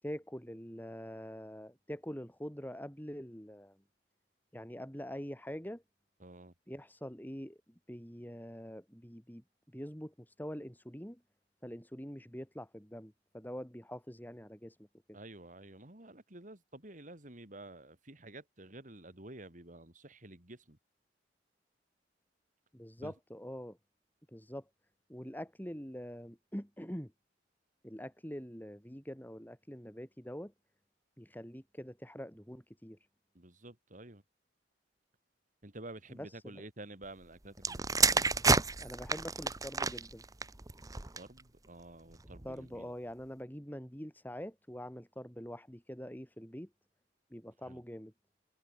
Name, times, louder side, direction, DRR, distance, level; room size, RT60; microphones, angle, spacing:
voice 1, 0.0-3.8 4.5-5.8 6.7-11.2 11.6-14.8 15.1-15.2 22.7-23.8 24.3-24.7 25.1-27.1 27.8-30.5 31.2-33.0 36.1-36.6 38.8-40.2 42.4-46.7 47.3-48.1, equal, 10° left, 6.8 m, -45 dB
voice 2, 6.2-6.5 15.1-20.8 23.0-23.1 33.3-34.2 35.6-38.3 41.1-42.9 47.7-47.8, right 2 dB, 45° right, 3.4 m, -50 dB
sound 1, 37.6-41.4 42.2-42.5, right 4 dB, 20° right, 1.1 m, -30 dB
head